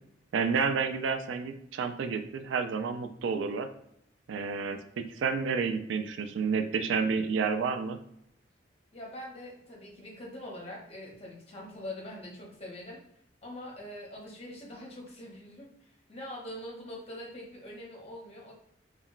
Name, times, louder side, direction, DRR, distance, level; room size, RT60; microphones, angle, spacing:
voice 1, 0.3-3.7 4.3-8.0, right 5 dB, 85° right, 8 dB, 0.3 m, -30 dB
voice 2, 8.9-13.0 13.4-18.5, left 1 dB, 35° left, -2 dB, 0.8 m, -43 dB
2.2 x 2.1 x 3.7 m, 0.73 s
head